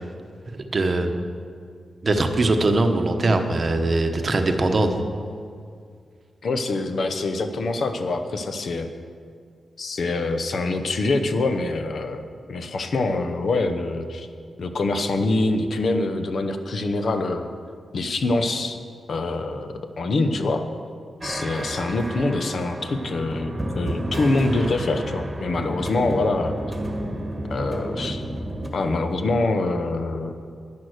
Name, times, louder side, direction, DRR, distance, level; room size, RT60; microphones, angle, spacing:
voice 1, 0.7-1.1 2.0-4.9, right 2 dB, 35° right, 6 dB, 1.0 m, -21 dB
voice 2, 6.4-8.9 9.8-12.2 12.5-14.3 14.6-17.5 17.9-18.8 19.1-20.6 21.2-26.5 27.5-28.2 28.7-30.3, left 2 dB, 55° left, 8 dB, 0.9 m, -25 dB
sound 1, 21.2-28.7, right 1 dB, 15° right, 1.5 m, -31 dB
11.0 x 10.5 x 6.5 m, 2.2 s
wide cardioid pair, 165°, 0 cm